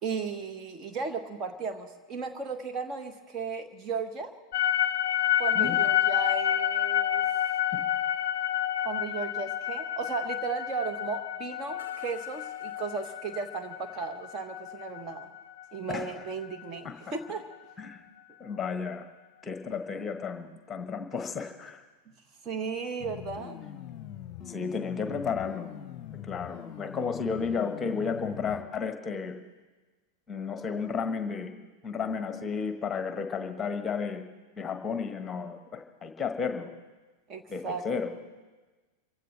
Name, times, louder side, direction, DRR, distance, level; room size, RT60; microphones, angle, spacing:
voice 1, 0.0-4.3 5.4-7.2 8.8-15.3 15.7-17.5 22.4-23.6 37.3-37.8, right 5 dB, 30° right, 6 dB, 1.2 m, -35 dB
sound 1, 4.5-16.7, left 11 dB, 55° left, 0.4 m, -29 dB
voice 2, 15.9-16.3 16.8-17.1 17.8-18.0 18.4-19.0 19.4-21.8 24.5-25.7 26.2-29.4 30.3-31.5 31.8-34.3 34.6-36.7 37.5-38.1, left 5 dB, 20° left, 7 dB, 1.4 m, -33 dB
sound 2, 23.0-28.6, left 10 dB, 35° left, 0.9 m, -42 dB
26.5 x 16.0 x 3.4 m, 1.3 s
figure-of-eight pair, 90°, 0 cm